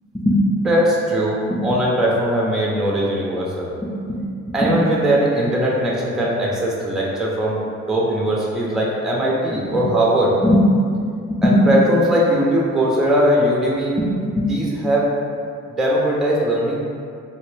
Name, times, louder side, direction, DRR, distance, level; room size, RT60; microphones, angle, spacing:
voice 1, 0.1-4.2 4.5-7.6 7.9-10.7 11.3-15.2 15.8-16.8, equal, ahead, -4 dB, 0.5 m, -19 dB
3.2 x 2.1 x 3.1 m, 2.3 s
cardioid pair, 90°, 30 cm